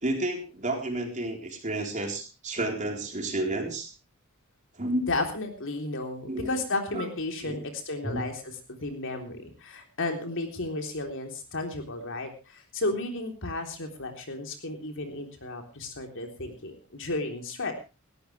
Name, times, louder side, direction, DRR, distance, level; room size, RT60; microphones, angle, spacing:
voice 1, 0.0-3.9 4.8-5.1 6.3-6.5 6.9-7.1 7.4-7.6 8.0-8.2, right 1 dB, 35° right, 2 dB, 4.0 m, -31 dB
voice 2, 5.1-17.7, left 2 dB, 65° left, 4 dB, 3.5 m, -33 dB
19.0 x 16.0 x 3.3 m, 0.31 s
head